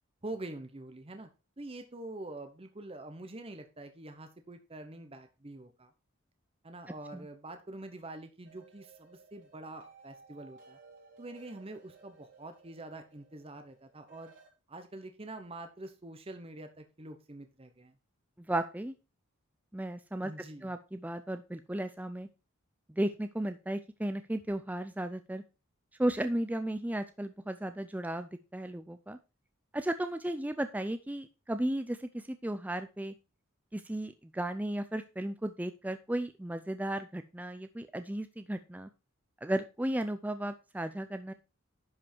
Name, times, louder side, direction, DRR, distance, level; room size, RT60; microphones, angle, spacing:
voice 1, 0.2-1.3 1.6-5.9 6.6-10.8 11.2-14.3 14.7-18.0 20.2-20.7, right 2 dB, 30° right, 7 dB, 0.9 m, -45 dB
sound 1, 8.4-14.5, right 4 dB, 60° right, 4.8 m, -58 dB
voice 2, 18.5-18.9 19.7-20.3 20.6-22.3 22.9-25.4 26.0-29.2 29.7-33.1 33.7-38.9 39.4-41.3, right 1 dB, 10° right, 9 dB, 0.4 m, -35 dB
11.0 x 5.4 x 4.4 m, 0.30 s
head